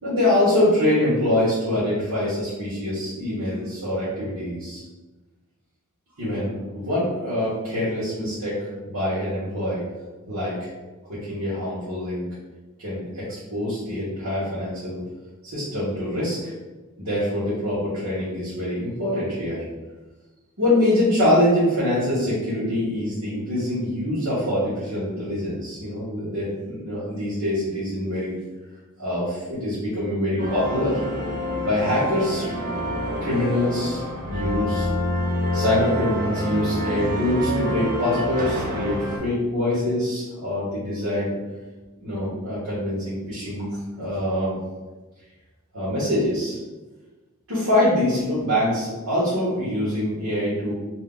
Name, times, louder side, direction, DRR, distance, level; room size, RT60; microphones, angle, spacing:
voice 1, 0.0-4.8 6.2-9.8 10.3-10.7 11.1-12.3 12.8-15.0 15.4-16.5 17.0-19.6 20.6-28.3 29.0-31.0 31.6-32.5 33.2-34.0 34.3-34.9 35.5-41.3 42.0-43.7 44.0-44.6 45.7-46.6 47.5-50.7, left 1 dB, 75° right, -12 dB, 1.1 m, -24 dB
sound 1, 30.4-39.2, left 1 dB, 40° right, 0.5 m, -27 dB
2.7 x 2.2 x 3.7 m, 1.2 s
head